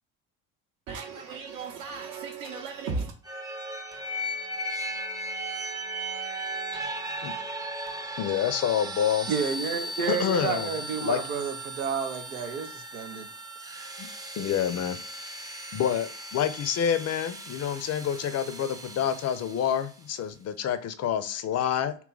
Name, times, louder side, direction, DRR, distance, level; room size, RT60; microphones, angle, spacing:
voice 1, 0.9-3.1, right 4 dB, 50° right, 0.7 m, -35 dB
sound 1, 3.2-20.0, right 1 dB, 10° right, 0.6 m, -37 dB
voice 2, 8.2-9.3 10.1-10.7 11.0-11.2 14.0-14.1 14.4-15.3 15.7-22.0, left 9 dB, 40° left, 0.5 m, -28 dB
voice 3, 9.3-13.3, right 6 dB, 90° right, 0.6 m, -31 dB
2.8 x 2.3 x 3.8 m
hypercardioid pair, 55°, 42 cm